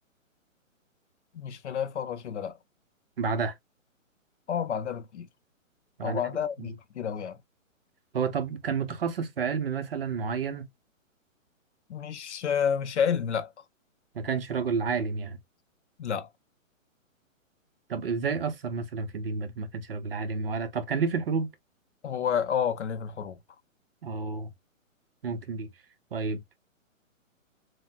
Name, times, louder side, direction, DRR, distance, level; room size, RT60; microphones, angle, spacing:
voice 1, 1.3-2.6 4.5-5.3 6.0-7.4 11.9-13.5 16.0-16.3 22.0-23.4, left 7 dB, 60° left, 0.5 m, -30 dB
voice 2, 3.2-3.6 6.0-6.2 6.6-6.7 8.1-10.7 14.1-15.4 17.9-21.5 24.0-24.5 25.2-25.7 26.1-26.4, right 5 dB, 45° right, 0.6 m, -30 dB
3.3 x 2.1 x 2.4 m
hypercardioid pair, 160°, 40 cm